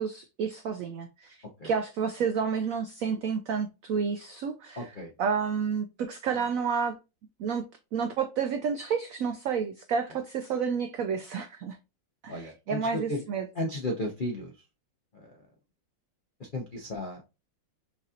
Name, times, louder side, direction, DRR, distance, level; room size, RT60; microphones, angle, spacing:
voice 1, 0.0-1.4 1.6-4.9 5.2-6.9 7.4-7.6 7.9-11.8 12.2-13.5, right 6 dB, 90° right, 0.7 m, -30 dB
voice 2, 4.8-5.1 12.3-13.2 13.5-14.5 15.1-15.4 16.4-17.2, left 1 dB, 65° left, 0.5 m, -34 dB
5.8 x 2.8 x 2.4 m
omnidirectional pair, 2.0 m